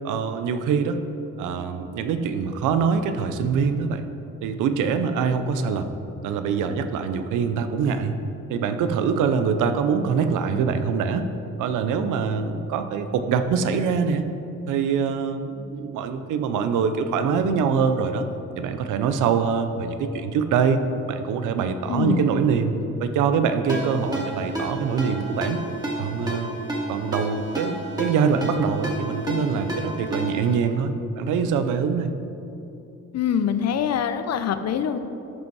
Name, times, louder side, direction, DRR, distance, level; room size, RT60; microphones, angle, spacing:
voice 1, 0.0-1.0 1.4-4.0 4.4-5.9 6.2-8.2 8.5-11.2 11.6-14.3 14.7-18.2 18.6-20.8 21.1-25.6 26.0-26.5 26.9-32.1, right 6 dB, 85° right, 9 dB, 0.7 m, -24 dB
voice 2, 21.9-22.3 33.1-35.0, left 8 dB, 60° left, 10 dB, 0.7 m, -24 dB
Ringtone, 23.7-30.6, right 1 dB, 10° right, 2.2 m, -31 dB
12.5 x 5.3 x 4.7 m, 2.8 s
cardioid pair, 90°, 30 cm